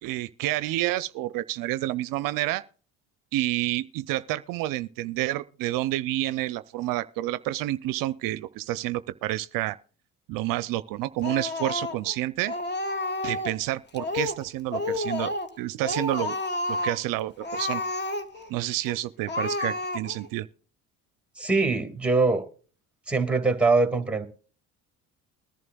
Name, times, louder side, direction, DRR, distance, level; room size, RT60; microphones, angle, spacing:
voice 1, 0.0-2.6 3.3-9.8 10.3-12.5 13.2-15.3 15.6-16.4 16.7-17.8 18.5-20.5, right 16 dB, 65° right, 0.5 m, -29 dB
Speech, 11.2-12.1 12.5-13.6 13.9-14.4 14.7-15.6 15.8-17.0 17.4-18.5 18.8-19.0 19.3-20.3, left 2 dB, 30° left, 1.3 m, -30 dB
voice 2, 21.4-22.4 23.1-24.3, right 3 dB, 5° right, 1.9 m, -23 dB
21.0 x 11.0 x 2.2 m
supercardioid pair, 80°, 36 cm